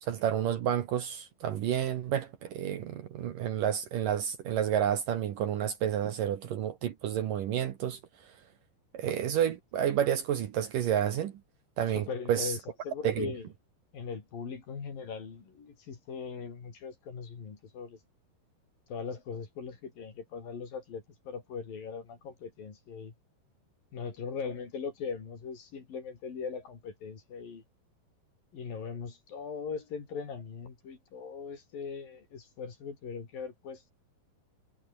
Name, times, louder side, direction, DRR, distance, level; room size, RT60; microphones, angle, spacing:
voice 1, 0.0-8.3 8.9-11.4 11.8-12.5 13.0-13.3, right 10 dB, 65° right, 2.6 m, -30 dB
voice 2, 11.9-12.6 12.8-13.5 13.9-18.0 18.9-23.1 23.9-27.6 28.5-33.9, left 5 dB, 55° left, 5.8 m, -40 dB
omnidirectional pair, 4.8 m